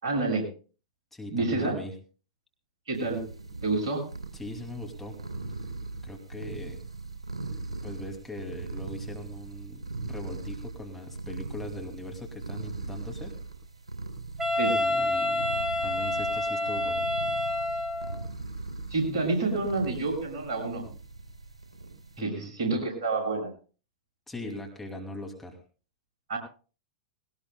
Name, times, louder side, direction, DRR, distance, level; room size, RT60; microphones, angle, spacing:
voice 1, 0.0-0.5 1.3-1.8 2.9-3.2 3.6-4.0 14.6-14.8 18.9-20.8 22.2-23.5 26.3-26.4, right 3 dB, 55° right, 2 dB, 7.2 m, -28 dB
voice 2, 1.1-1.9 4.3-5.2 6.0-6.8 7.8-13.4 14.7-15.5 15.8-17.1 22.2-22.5 24.3-25.6, left 1 dB, 5° left, 1 dB, 2.7 m, -40 dB
sound 1, 2.9-22.2, right 3 dB, 75° right, 4.0 m, -40 dB
Wind instrument woodwind instrument, 14.4-18.2, left 1 dB, 10° right, 1.9 m, -28 dB
21.0 x 18.0 x 2.3 m, 0.37 s
figure-of-eight pair, 95°, 3 cm